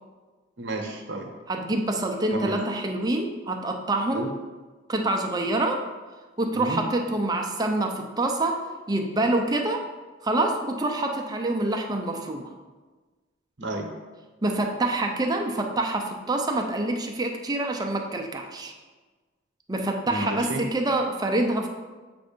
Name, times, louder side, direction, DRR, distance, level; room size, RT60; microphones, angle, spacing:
voice 1, 0.6-1.3 2.3-2.6 4.1-4.3 6.5-6.8 13.6-13.9 20.1-20.6, right 2 dB, 65° right, 2 dB, 0.9 m, -31 dB
voice 2, 1.5-4.3 4.9-5.8 6.4-9.8 10.2-12.5 14.4-18.7 19.7-21.7, right 2 dB, 20° right, 3 dB, 0.5 m, -26 dB
7.5 x 2.6 x 5.1 m, 1.3 s
head